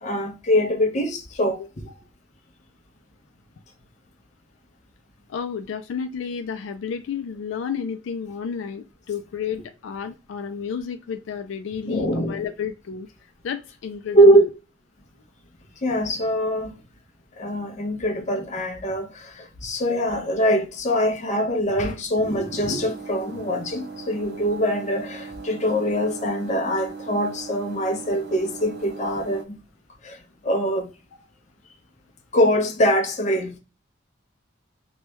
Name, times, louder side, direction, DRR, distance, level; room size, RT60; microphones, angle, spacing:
voice 1, 0.0-1.6 11.9-12.4 14.1-14.4 15.8-16.8 17.4-29.6 30.0-30.9 32.3-33.6, equal, 40° left, 0.6 m, -23 dB
voice 2, 5.3-13.1 13.4-14.5, left 7 dB, 80° left, 0.3 m, -31 dB
sound 1, 22.2-29.4, right 4 dB, 55° right, 0.6 m, -38 dB
3.0 x 2.2 x 3.0 m
head